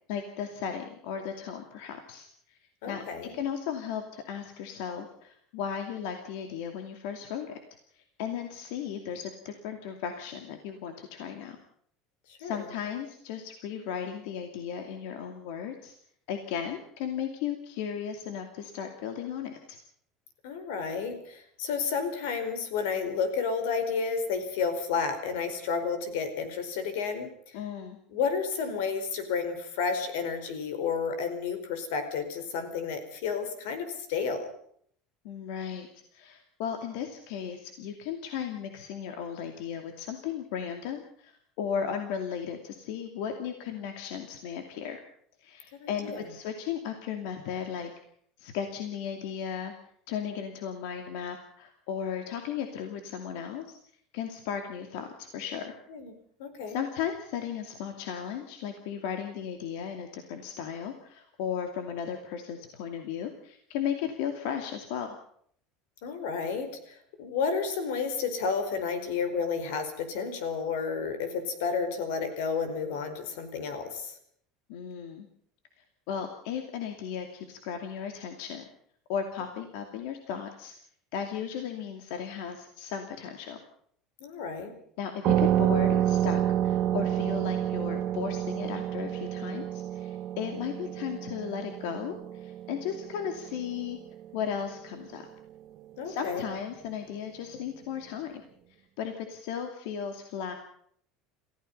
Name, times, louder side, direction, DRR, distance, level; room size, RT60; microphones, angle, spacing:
voice 1, 0.1-2.6 2.9-3.0 3.3-7.6 7.9-11.6 12.4-15.9 16.3-19.8 27.5-28.0 35.2-45.0 45.4-47.9 48.4-49.7 50.1-53.6 54.1-55.7 56.7-65.2 74.7-75.3 76.1-78.6 79.1-80.7 81.1-83.6 85.0-94.0 94.3-95.3 96.0-98.4 99.0-100.5, left 8 dB, 65° left, 6 dB, 2.5 m, -35 dB
voice 2, 2.8-3.3 12.3-12.7 20.4-27.6 28.1-34.5 45.7-46.3 55.9-56.1 56.4-56.8 66.0-74.1 84.2-84.7 96.0-96.4, left 5 dB, 90° left, 9 dB, 4.8 m, -31 dB
sound 1, 85.2-94.4, right 11 dB, 40° right, 1.1 m, -29 dB
29.5 x 16.0 x 5.6 m, 0.63 s
cardioid pair, 180°, 0 cm